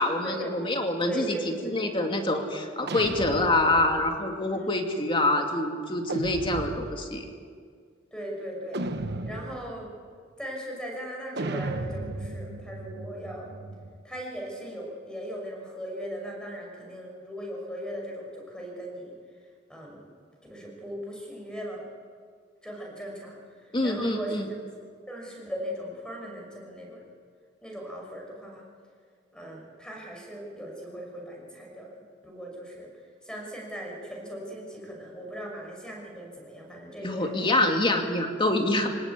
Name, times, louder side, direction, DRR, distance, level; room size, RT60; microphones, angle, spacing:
voice 1, 0.0-1.4 1.6-7.2 23.7-24.5 37.0-38.9, left 2 dB, 25° left, 3 dB, 2.6 m, -26 dB
voice 2, 1.1-1.7 4.5-4.7 8.1-8.8 9.2-9.9 10.4-13.5 14.0-19.1 19.7-20.1 20.5-21.9 22.6-23.4 23.8-24.5 25.1-27.1 27.6-28.7 29.3-31.9 32.2-32.9 33.2-37.4, equal, 5° left, -1 dB, 6.1 m, -38 dB
sound 1, 2.9-4.2 6.1-7.2 8.7-9.8 11.4-14.0, right 2 dB, 60° right, 1.2 m, -35 dB
26.0 x 18.0 x 8.6 m, 2.1 s
head